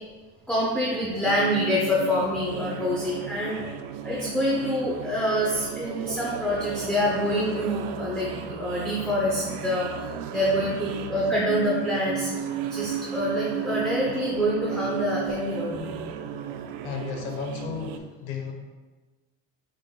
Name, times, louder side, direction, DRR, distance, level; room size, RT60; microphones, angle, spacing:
voice 1, 0.5-3.6 4.0-12.3 12.7-16.0, equal, 5° left, -6 dB, 0.5 m, -26 dB
sound 1, 1.2-18.0, right 9 dB, 90° right, 0.5 m, -34 dB
voice 2, 3.4-3.8 16.8-18.5, left 6 dB, 90° left, 3 dB, 0.9 m, -34 dB
6.4 x 3.8 x 2.2 m, 1.3 s
cardioid pair, 150°, 33 cm